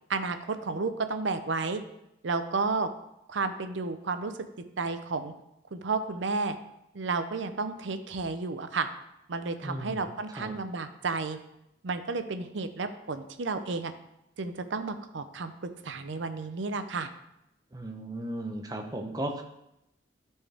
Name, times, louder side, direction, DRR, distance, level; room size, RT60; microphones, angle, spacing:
voice 1, 0.1-1.8 2.2-2.9 3.3-4.3 4.8-5.3 5.7-6.6 6.9-8.9 9.3-11.4 11.8-13.9 14.4-17.1, right 4 dB, 75° right, 9 dB, 0.6 m, -32 dB
voice 2, 9.6-10.6 17.7-19.4, right 1 dB, 20° right, 3 dB, 0.8 m, -36 dB
12.0 x 4.5 x 3.5 m, 0.85 s
head